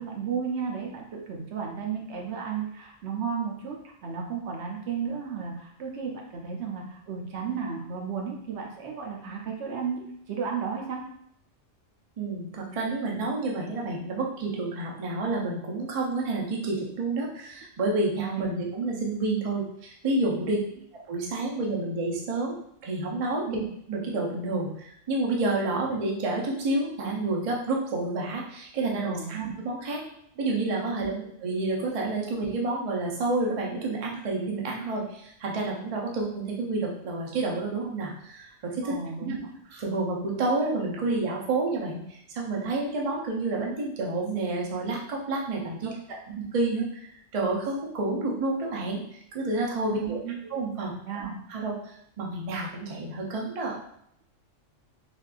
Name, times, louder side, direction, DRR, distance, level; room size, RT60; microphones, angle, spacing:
voice 1, 0.0-11.1 18.2-18.4 23.5-23.7 29.0-29.5 30.9-31.3 38.8-39.5 45.8-46.2 49.9-50.4 50.8-51.3, right 6 dB, 65° right, 0 dB, 0.8 m, -34 dB
voice 2, 12.2-20.6 21.1-22.6 22.8-23.5 23.9-30.0 30.4-31.1 31.4-39.3 39.7-45.9 46.5-49.0 49.3-50.2 50.5-50.9 51.5-53.7, right 2 dB, 50° right, -2 dB, 0.4 m, -29 dB
3.4 x 2.4 x 2.4 m, 0.70 s
omnidirectional pair, 1.3 m